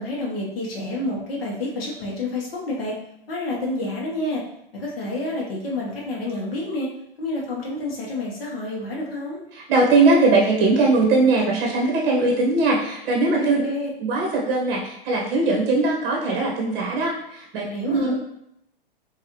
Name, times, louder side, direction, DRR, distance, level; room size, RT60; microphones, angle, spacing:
voice 1, 0.0-3.0 3.3-4.4 4.7-6.9 7.2-9.4 13.4-13.9 17.6-18.1, left 1 dB, 80° left, -3 dB, 1.5 m, -29 dB
voice 2, 9.5-13.6 14.0-18.1, right 3 dB, 35° right, -2 dB, 1.4 m, -20 dB
3.8 x 3.1 x 3.1 m, 0.76 s
hypercardioid pair, 125°, 29 cm